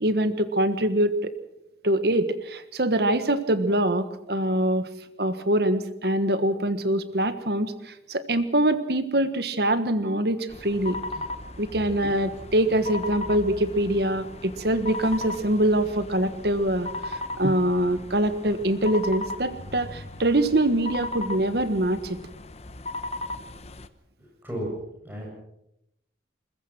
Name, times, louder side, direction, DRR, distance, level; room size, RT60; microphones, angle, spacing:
voice 1, 0.0-1.3 1.8-4.9 5.2-11.0 11.6-22.2, right 1 dB, 55° right, 12 dB, 1.4 m, -24 dB
sound 1, 10.5-23.9, left 2 dB, 35° left, 0.9 m, -37 dB
voice 2, 24.4-25.3, right 1 dB, 10° right, -2 dB, 7.8 m, -33 dB
22.0 x 21.0 x 6.1 m, 0.82 s
head